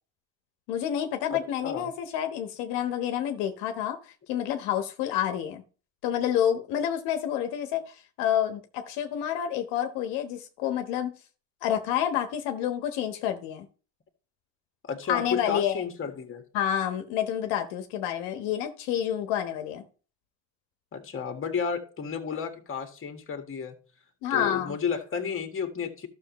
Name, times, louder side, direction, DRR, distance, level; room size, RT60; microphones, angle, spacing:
voice 1, 0.7-5.6 6.0-11.1 11.6-13.7 15.1-15.8 16.5-19.8 24.2-24.8, left 10 dB, 70° left, 1.4 m, -29 dB
voice 2, 1.3-1.9 14.8-16.4 20.9-23.7 24.3-26.1, left 6 dB, 30° left, 1.8 m, -32 dB
12.5 x 6.5 x 3.1 m
supercardioid pair, 95°, 42 cm